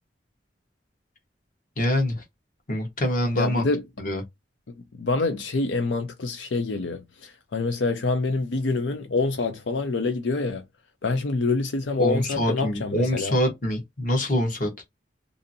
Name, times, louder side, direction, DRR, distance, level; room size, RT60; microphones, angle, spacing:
voice 1, 1.8-2.2 2.7-3.7 4.0-4.2 12.0-14.7, left 1 dB, 45° left, 1.0 m, -25 dB
voice 2, 3.4-3.8 5.0-10.6 11.0-13.4, left 3 dB, 80° left, 0.5 m, -26 dB
2.7 x 2.6 x 2.6 m
head